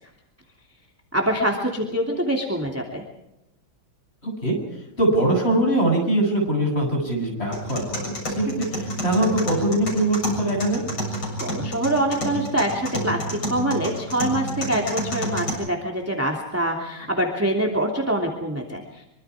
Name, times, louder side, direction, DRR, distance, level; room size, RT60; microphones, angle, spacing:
voice 1, 1.1-3.0 11.4-19.0, right 1 dB, 5° right, 0 dB, 2.6 m, -25 dB
voice 2, 4.2-4.6 5.0-10.8, right 1 dB, 30° left, 0 dB, 8.2 m, -22 dB
sound 1, 7.5-15.5, equal, 80° left, 8.2 m, -30 dB
25.0 x 24.5 x 4.9 m, 0.92 s
omnidirectional pair, 2.3 m